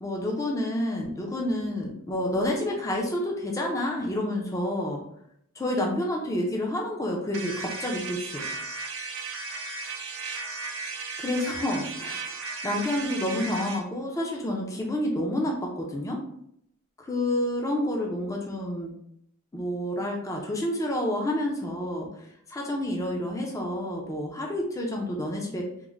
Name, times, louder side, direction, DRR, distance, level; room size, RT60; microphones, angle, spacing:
voice 1, 0.0-5.0 5.6-8.4 11.2-12.3 12.6-16.2 17.0-18.9 19.5-22.1 22.5-25.7, left 1 dB, 15° left, -1 dB, 0.4 m, -29 dB
sound 1, 7.3-13.8, right 4 dB, 60° right, 0.6 m, -35 dB
3.6 x 2.1 x 3.1 m, 0.72 s
head